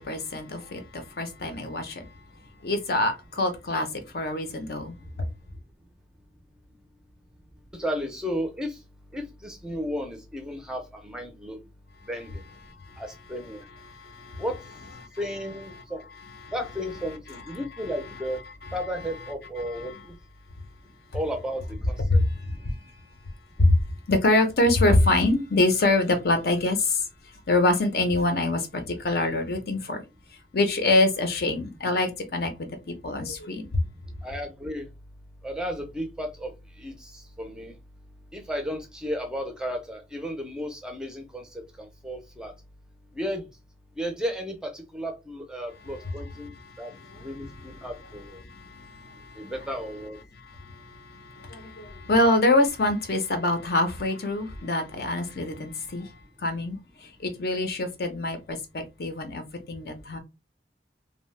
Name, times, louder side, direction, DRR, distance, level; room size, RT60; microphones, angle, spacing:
voice 1, 0.0-2.1 2.6-5.3 12.9-13.0 13.9-14.4 16.4-16.5 19.6-19.9 22.1-22.8 23.6-27.0 27.5-30.0 30.5-33.9 46.6-47.9 48.4-49.5 50.4-56.1 56.4-56.8 57.2-60.2, left 2 dB, 60° left, 0.6 m, -25 dB
voice 2, 7.7-8.8 9.1-11.6 12.0-12.4 13.0-13.7 14.4-14.7 15.2-16.0 16.5-18.4 18.7-20.1 21.1-22.2 34.2-34.9 35.4-36.5 36.8-37.7 38.3-42.5 43.1-43.4 44.0-46.9 47.2-48.4 49.4-50.2, equal, 5° right, 0.5 m, -34 dB
2.7 x 2.1 x 3.2 m
head